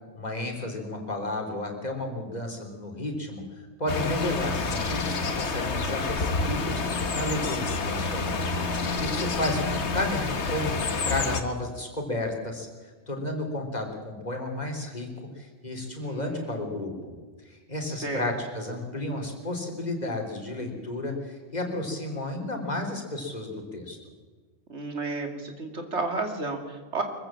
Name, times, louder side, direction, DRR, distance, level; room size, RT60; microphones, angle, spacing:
voice 1, 0.1-3.4 3.8-6.8 7.1-8.4 9.0-15.1 15.4-17.2 17.5-24.0, left 1 dB, 40° left, 2 dB, 3.6 m, -32 dB
sound 1, 3.9-11.4, left 3 dB, 85° left, 1.7 m, -28 dB
voice 2, 16.0-16.7 17.9-18.3 24.7-27.0, right 3 dB, 90° right, 5 dB, 3.0 m, -32 dB
24.0 x 15.0 x 7.3 m, 1.4 s
omnidirectional pair, 1.1 m